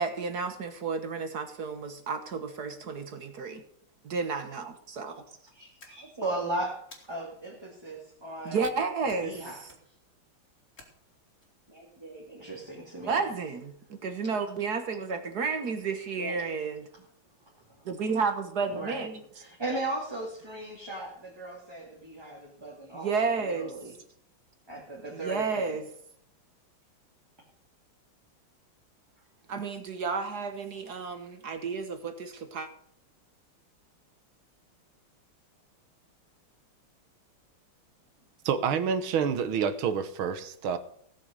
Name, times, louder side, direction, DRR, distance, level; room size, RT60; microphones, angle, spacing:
voice 1, 0.0-3.6 4.0-5.2 8.4-9.7 13.0-16.9 17.8-19.2 22.9-23.7 25.1-25.8 29.5-32.7, right 5 dB, 55° right, 8 dB, 1.5 m, -32 dB
voice 2, 5.5-8.6 9.2-9.6 11.7-13.2 16.2-16.4 18.7-19.0 19.4-23.1 23.4-23.9 24.7-25.8, right 2 dB, 10° right, -4 dB, 2.2 m, -37 dB
sound 1, 5.8-6.4 6.9-7.5 9.1-9.4 9.6-10.1 10.8-11.5, left 3 dB, 35° left, 2.8 m, -54 dB
voice 3, 38.5-40.8, right 7 dB, 75° right, 12 dB, 1.8 m, -28 dB
16.5 x 7.1 x 6.5 m, 0.65 s
omnidirectional pair, 2.3 m